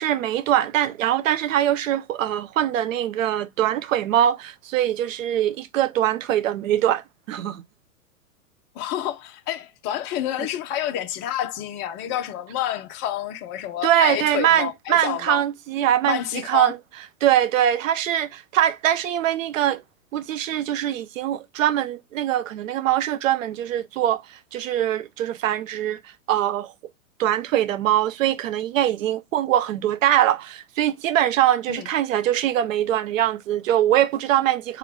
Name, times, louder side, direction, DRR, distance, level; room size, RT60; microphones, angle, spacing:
voice 1, 0.0-7.6 13.8-16.8 17.2-19.8 20.1-24.2 24.5-26.0 26.3-26.7 27.2-34.8, right 11 dB, 65° right, 0.6 m, -22 dB
voice 2, 8.7-15.4 16.0-16.7 31.7-31.9, left 11 dB, 25° left, 0.5 m, -29 dB
3.3 x 3.0 x 3.6 m
hypercardioid pair, 110°, 43 cm